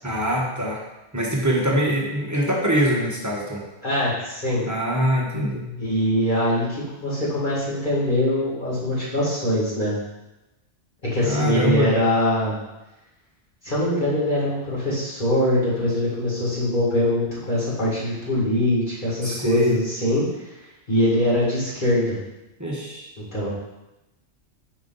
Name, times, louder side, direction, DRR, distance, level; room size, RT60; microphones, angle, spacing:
voice 1, 0.0-0.8 1.1-3.6 4.7-5.7 11.2-11.9 19.2-19.8 22.6-23.1, equal, 15° right, -3 dB, 1.1 m, -23 dB
voice 2, 3.8-4.6 5.8-9.9 11.1-12.6 13.6-20.2 20.9-22.2 23.3-23.5, left 1 dB, 40° left, -8 dB, 2.3 m, -22 dB
5.6 x 5.3 x 4.0 m, 0.98 s
omnidirectional pair, 1.2 m